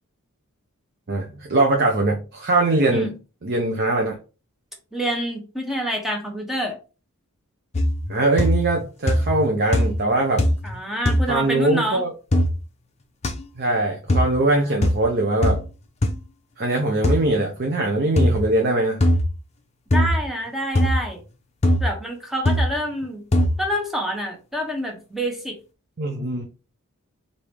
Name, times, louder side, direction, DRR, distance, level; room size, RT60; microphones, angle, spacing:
voice 1, 1.1-4.2 8.1-10.4 11.3-12.1 13.6-15.6 16.6-19.0 26.0-26.4, right 2 dB, 50° right, 1 dB, 0.8 m, -22 dB
voice 2, 4.9-6.8 10.6-12.1 14.5-14.6 19.9-21.2 21.8-23.2 23.6-25.6, equal, ahead, 1 dB, 1.0 m, -27 dB
sound 1, 7.7-8.1 8.4-8.8 9.1-9.5 9.7-10.1 10.4-10.7 11.0-11.3 12.3-12.5 13.2-13.3 14.1-14.3 14.8-15.0 15.4-15.6 16.0-16.1 17.0-17.2 18.2-18.4 19.0-19.3 19.9-20.2 20.7-21.0 21.6-21.9 22.4-22.7 23.3-23.6, left 1 dB, 30° left, 0.7 m, -19 dB
4.7 x 2.7 x 3.4 m, 0.32 s
head